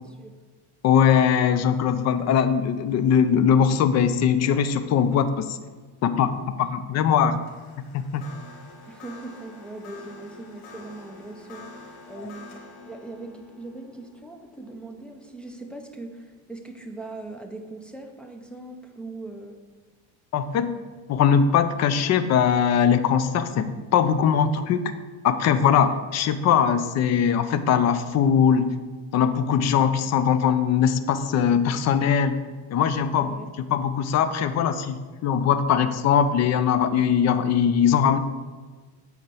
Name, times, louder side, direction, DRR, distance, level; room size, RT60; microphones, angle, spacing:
voice 1, 0.8-5.6 6.0-7.4 7.9-8.2 20.3-20.8 21.1-24.9 25.2-28.8 29.1-32.4 32.7-33.4 33.7-38.2, left 7 dB, 40° left, 11 dB, 0.6 m, -21 dB
sound 1, 7.3-16.6, left 3 dB, 70° left, 1.9 m, -47 dB
voice 2, 8.9-19.6 33.2-33.5, right 2 dB, ahead, 1 dB, 0.7 m, -40 dB
8.2 x 4.5 x 7.0 m, 1.3 s
cardioid pair, 145°, 42 cm